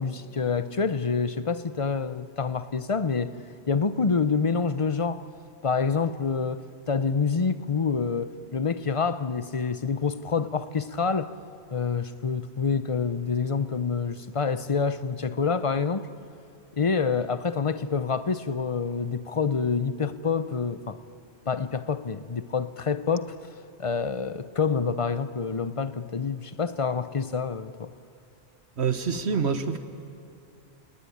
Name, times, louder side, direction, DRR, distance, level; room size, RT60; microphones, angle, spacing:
voice 1, 0.0-3.4 3.7-5.2 5.6-11.3 11.7-16.1 16.8-21.0 21.5-23.3 23.8-27.9, left 5 dB, 35° left, 0.8 m, -27 dB
voice 2, 28.8-29.8, right 5 dB, 85° right, 1.6 m, -26 dB
28.0 x 20.0 x 10.0 m
omnidirectional pair, 1.1 m